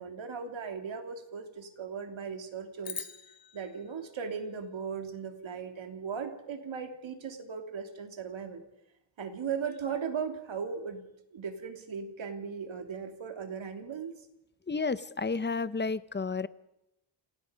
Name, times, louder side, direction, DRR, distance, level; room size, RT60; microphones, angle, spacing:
voice 1, 0.0-3.1 3.5-8.6 9.2-11.0 11.3-14.1, right 6 dB, 75° right, 5 dB, 3.0 m, -37 dB
sound 1, 2.8-5.3, left 6 dB, 45° left, 1.9 m, -45 dB
voice 2, 14.7-16.5, left 4 dB, 20° left, 15 dB, 0.8 m, -31 dB
28.0 x 19.0 x 5.2 m, 0.86 s
wide cardioid pair, 115°, 48 cm